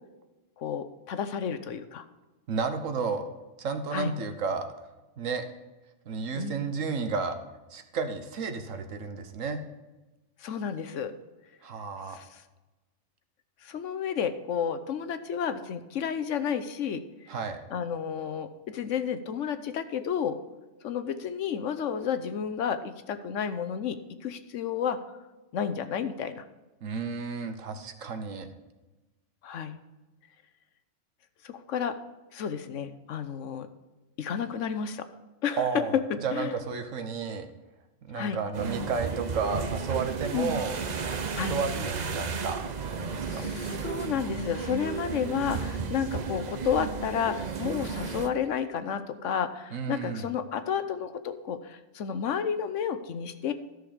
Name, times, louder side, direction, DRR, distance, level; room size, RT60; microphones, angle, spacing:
voice 1, 0.6-2.0 3.9-4.1 6.4-6.7 10.4-11.1 12.1-12.4 13.6-17.0 17.7-20.4 20.8-25.2 25.5-26.4 29.4-29.8 31.4-32.0 32.3-33.7 34.2-35.1 35.4-35.7 35.9-36.5 38.1-38.4 40.3-40.5 41.3-41.6 43.2-53.5, left 7 dB, 80° left, 11 dB, 1.1 m, -31 dB
voice 2, 2.5-3.2 3.6-4.7 5.2-5.5 6.1-7.4 7.7-9.6 11.6-12.2 17.3-17.6 26.8-28.5 35.6-35.9 36.2-37.5 38.0-40.8 41.3-43.5 49.7-50.3, right 5 dB, 85° right, 8 dB, 1.4 m, -32 dB
sound 1, 38.5-48.3, right 5 dB, 40° right, 0.7 m, -33 dB
12.5 x 6.4 x 5.0 m, 1.1 s
omnidirectional pair, 1.3 m